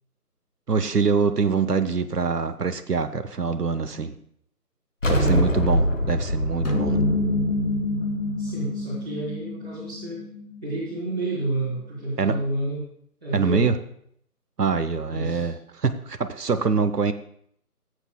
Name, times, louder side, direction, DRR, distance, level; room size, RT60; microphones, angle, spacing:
voice 1, 0.7-4.2 5.1-7.0 12.2-12.4 13.3-13.7 14.6-17.1, right 5 dB, 80° right, 10 dB, 0.8 m, -24 dB
sound 1, 5.0-8.5, left 1 dB, 55° left, 1.2 m, -24 dB
voice 2, 5.0-5.5 8.4-10.2 10.6-12.8 13.2-13.7 15.1-15.5, right 2 dB, 5° right, -16 dB, 1.4 m, -29 dB
sound 2, 6.6-11.3, left 2 dB, 70° left, 2.3 m, -27 dB
15.0 x 8.0 x 2.2 m, 0.67 s
figure-of-eight pair, 165°, 47 cm